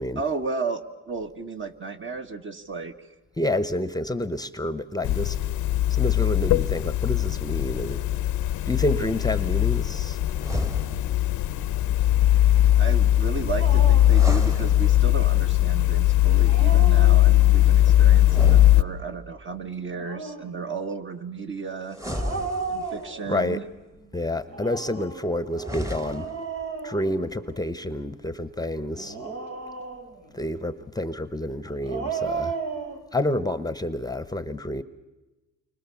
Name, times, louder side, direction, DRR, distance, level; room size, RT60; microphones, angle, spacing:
voice 1, 0.2-2.9 12.8-22.0 22.7-23.6, right 4 dB, 40° right, 6 dB, 1.9 m, -33 dB
voice 2, 3.4-5.4 5.9-8.0 8.6-10.2 23.3-23.6 24.1-26.3 26.8-29.2 30.3-32.5 33.1-34.8, left 1 dB, 15° left, 14 dB, 0.9 m, -29 dB
sound 1, 5.0-18.8, left 13 dB, 80° left, 0.8 m, -20 dB
sound 2, 10.3-11.3 14.0-15.3 18.2-19.4 21.9-23.2 25.5-26.5, equal, 10° right, 1.4 m, -33 dB
Dog, 13.6-14.2 16.3-17.7 19.8-20.6 22.1-23.6 24.5-27.7 28.9-30.3 31.7-33.0, right 5 dB, 75° right, 3.7 m, -34 dB
29.5 x 24.5 x 7.1 m, 1.1 s
cardioid pair, 90°, 30 cm